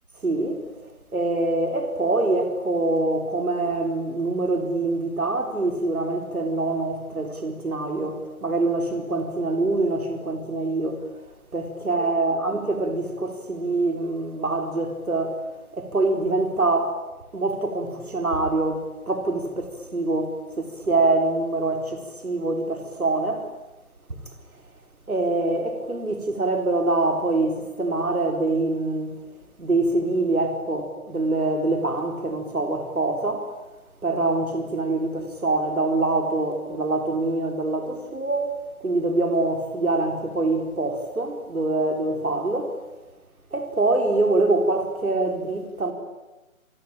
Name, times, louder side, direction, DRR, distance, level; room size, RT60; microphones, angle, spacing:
voice 1, 0.2-11.0 11.5-15.4 15.7-17.0 17.3-23.5 25.1-29.2 29.6-33.5 34.0-38.5 38.8-42.8 43.5-45.9, right 2 dB, 85° right, 4.3 m, -25 dB
28.5 x 23.0 x 8.9 m
figure-of-eight pair, 155°, 42 cm